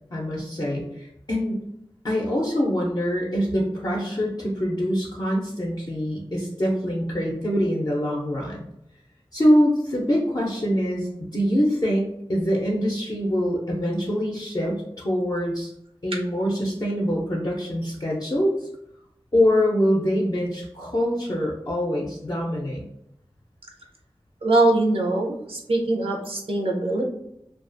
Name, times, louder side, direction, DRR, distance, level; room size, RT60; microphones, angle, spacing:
voice 1, 0.1-1.6 2.0-8.6 9.3-15.7 16.0-18.5 19.3-22.8, equal, 45° left, -3 dB, 0.5 m, -24 dB
voice 2, 24.4-27.0, right 2 dB, 80° right, 0 dB, 0.5 m, -22 dB
2.3 x 2.3 x 2.5 m, 0.77 s
wide cardioid pair, 60°, 10 cm